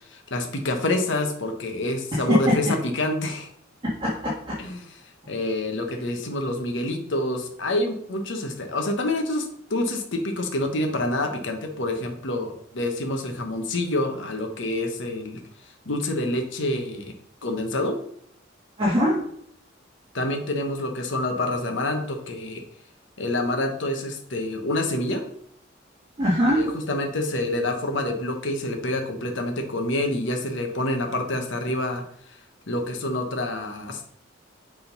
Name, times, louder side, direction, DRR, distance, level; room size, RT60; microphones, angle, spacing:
voice 1, 0.1-3.5 4.6-4.8 5.3-15.4 15.9-17.1 17.4-18.0 20.1-22.6 23.2-25.2 26.5-32.0 32.7-34.0, left 1 dB, 65° left, 4 dB, 1.1 m, -27 dB
voice 2, 2.1-2.7 3.8-4.6 18.8-19.2 26.2-26.6, equal, 25° right, -8 dB, 1.8 m, -22 dB
7.2 x 3.8 x 5.3 m, 0.66 s
head